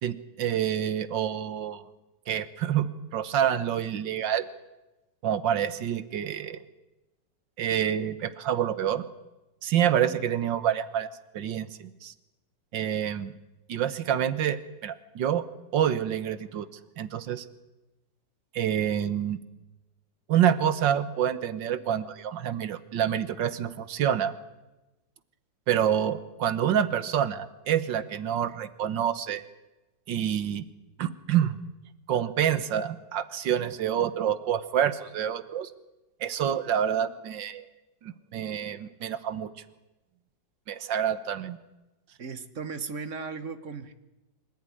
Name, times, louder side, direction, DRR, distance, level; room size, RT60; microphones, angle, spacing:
voice 1, 0.0-1.8 2.3-4.5 5.2-6.6 7.6-9.0 9.6-11.1 11.3-12.1 12.7-13.3 13.7-15.4 15.7-16.7 17.0-17.5 18.5-19.4 20.3-24.3 25.7-29.4 30.1-30.6 31.0-31.6 32.1-35.7 36.2-37.7 38.0-39.5 40.7-41.6, right 9 dB, 80° right, 14 dB, 1.8 m, -27 dB
voice 2, 42.2-43.9, right 4 dB, 45° right, 11 dB, 1.6 m, -36 dB
26.0 x 15.0 x 9.9 m, 1.0 s
omnidirectional pair, 2.0 m